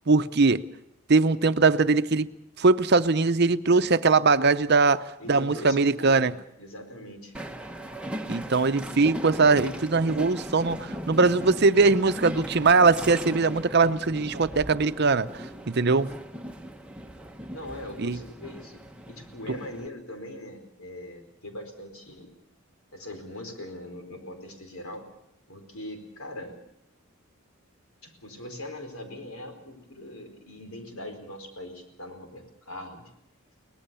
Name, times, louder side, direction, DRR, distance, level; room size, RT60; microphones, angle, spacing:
voice 1, 0.1-0.6 1.1-2.3 2.6-6.3 8.3-16.1 18.0-18.2, right 4 dB, 50° right, 12 dB, 0.7 m, -21 dB
voice 2, 5.2-7.3 17.5-18.8 19.1-22.3 22.9-25.0 25.5-26.5 28.0-33.1, left 1 dB, 85° left, 5 dB, 4.6 m, -41 dB
Train, 7.3-19.9, equal, 5° right, 1.0 m, -38 dB
23.0 x 19.0 x 7.0 m, 0.78 s
head